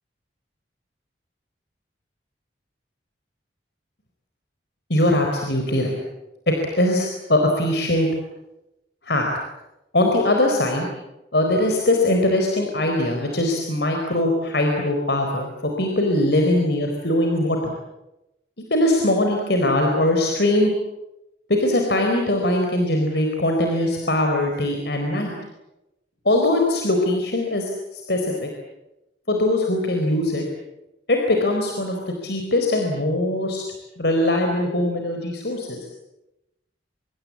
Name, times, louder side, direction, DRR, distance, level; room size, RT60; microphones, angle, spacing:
voice 1, 4.9-6.0 6.5-8.1 9.0-9.3 9.9-10.9 11.3-17.7 18.7-20.7 21.5-25.3 26.2-28.5 29.3-30.4 31.1-33.6 34.0-35.8, left 1 dB, 65° left, 2 dB, 4.3 m, -21 dB
26.0 x 24.5 x 8.6 m, 0.93 s
head